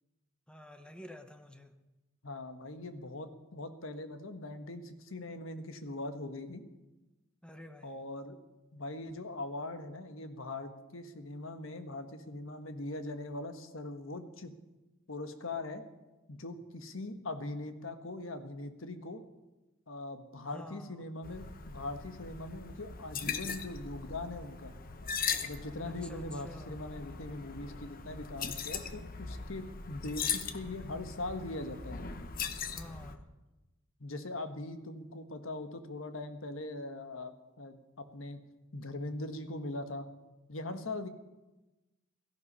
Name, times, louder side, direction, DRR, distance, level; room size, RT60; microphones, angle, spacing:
voice 1, 0.5-1.7 7.4-8.0 20.4-21.0 25.8-26.9 32.7-33.3, left 1 dB, 5° left, 7 dB, 1.0 m, -49 dB
voice 2, 2.2-6.6 7.8-8.4 8.7-14.5 15.1-15.8 16.3-19.2 19.9-24.7 25.4-32.0 34.0-38.4 38.7-40.1 40.5-41.1, left 2 dB, 80° left, 8 dB, 1.4 m, -41 dB
sound 1, 21.2-33.2, left 6 dB, 45° left, 1.0 m, -40 dB
16.5 x 14.5 x 5.6 m, 1.1 s
head